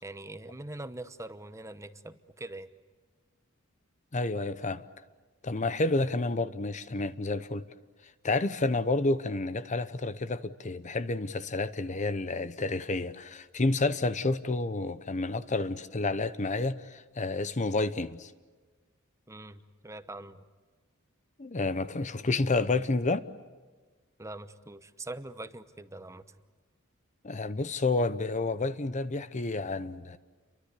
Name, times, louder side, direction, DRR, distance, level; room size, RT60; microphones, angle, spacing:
voice 1, 0.0-2.7 19.3-20.4 24.2-26.2, right 2 dB, 15° right, 1.0 m, -43 dB
voice 2, 4.1-4.8 5.4-7.7 8.2-18.3 21.4-23.2 27.2-30.2, left 2 dB, 35° left, 0.8 m, -30 dB
29.5 x 23.5 x 8.4 m
head